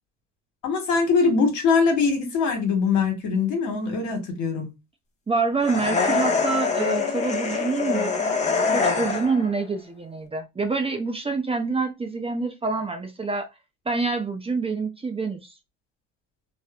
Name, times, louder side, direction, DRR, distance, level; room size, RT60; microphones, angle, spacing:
voice 1, 0.6-4.7, left 5 dB, 65° left, 1.2 m, -22 dB
voice 2, 5.3-8.2 8.7-13.5 13.9-15.5, right 4 dB, 20° right, 0.5 m, -26 dB
sound 1, 5.6-9.5, left 4 dB, 20° left, 0.7 m, -24 dB
2.9 x 2.0 x 2.3 m
supercardioid pair, 80°, 31 cm